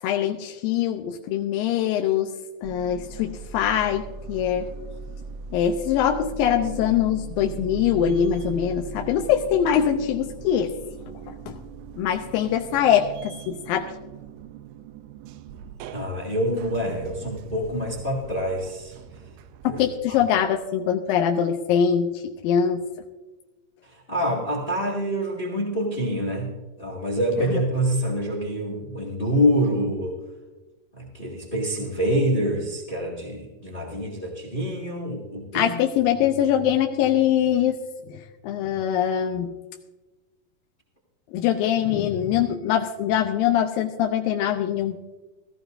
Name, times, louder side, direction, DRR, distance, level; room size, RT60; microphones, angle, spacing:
voice 1, 0.0-2.3 2.6-4.7 5.5-10.7 11.3-11.6 12.0-13.9 19.6-22.9 27.5-27.6 35.5-37.8 38.1-39.5 41.3-45.0, left 9 dB, 80° left, 3 dB, 2.2 m, -23 dB
sound 1, 2.6-20.7, right 5 dB, 85° right, 2.6 m, -40 dB
voice 2, 15.9-18.9 19.7-20.2 24.1-26.5 26.8-30.2 31.0-35.7, equal, 30° left, 0 dB, 1.0 m, -26 dB
17.5 x 14.5 x 2.6 m, 1.1 s
omnidirectional pair, 4.5 m